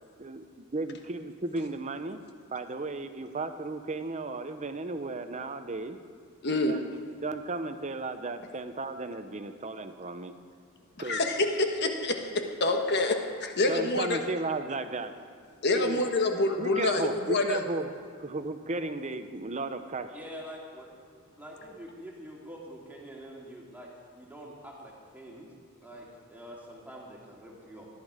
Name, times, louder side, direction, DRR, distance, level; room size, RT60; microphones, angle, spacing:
voice 1, 0.2-2.2 2.5-6.0 6.7-6.9 7.2-10.3 11.0-11.2 13.7-15.1 15.8-16.0 16.6-17.9 18.2-20.1, right 2 dB, 35° right, 9 dB, 0.7 m, -34 dB
voice 2, 6.4-6.7 11.0-12.1 12.6-13.1 13.4-14.2 15.6-17.6, left 2 dB, 50° left, 4 dB, 1.4 m, -26 dB
voice 3, 20.1-20.9 21.4-25.5 25.8-27.9, equal, 10° right, -3 dB, 2.4 m, -45 dB
17.5 x 11.5 x 5.0 m, 2.2 s
head